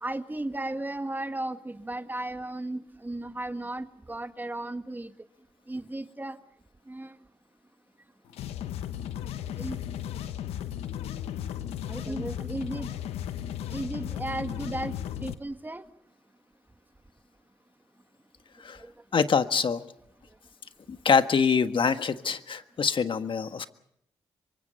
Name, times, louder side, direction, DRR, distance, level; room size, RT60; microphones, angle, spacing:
voice 1, 0.0-5.1 5.7-6.4 6.9-7.2 9.6-9.8 11.9-13.0 13.7-14.9 15.2-15.8 18.8-18.9, right 2 dB, 20° right, 9 dB, 1.7 m, -35 dB
sound 1, 8.3-15.3, left 10 dB, 85° left, 1.0 m, -35 dB
voice 2, 19.1-19.8 20.9-23.7, left 6 dB, 55° left, 9 dB, 1.6 m, -25 dB
26.0 x 24.0 x 5.6 m, 0.73 s
supercardioid pair, 50°, 10 cm